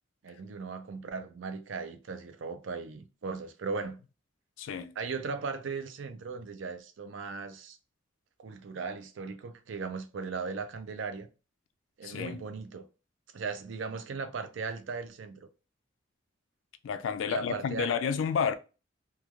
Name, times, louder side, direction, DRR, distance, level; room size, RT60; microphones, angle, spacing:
voice 1, 0.2-4.0 5.0-7.8 8.4-11.3 12.0-12.8 13.3-15.5 17.3-17.9, right 4 dB, 75° right, 0.4 m, -38 dB
voice 2, 4.6-4.9 12.0-12.4 16.8-18.5, left 6 dB, 80° left, 0.3 m, -30 dB
3.1 x 2.3 x 2.3 m
head